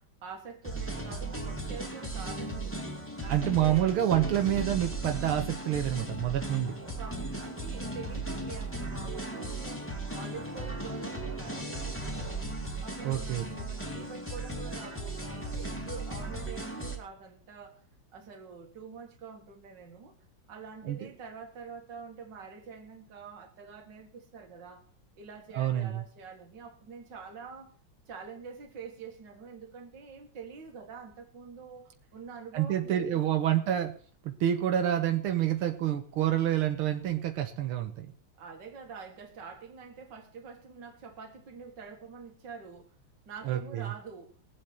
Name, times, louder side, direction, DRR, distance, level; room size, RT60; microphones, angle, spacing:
voice 1, 0.0-2.8 3.2-3.9 6.8-9.9 10.1-12.5 12.8-17.8 18.1-20.1 20.5-24.8 25.2-27.7 28.1-33.3 38.4-42.9 43.3-44.4, right 5 dB, 60° right, 2.3 m, -46 dB
sound 1, 0.6-17.0, right 2 dB, 5° left, 2.2 m, -36 dB
voice 2, 3.3-6.7 13.0-13.5 20.8-21.1 25.5-26.0 32.5-33.9 34.2-38.1 43.5-43.9, right 11 dB, 85° right, 1.9 m, -28 dB
21.5 x 7.8 x 4.5 m
omnidirectional pair, 2.3 m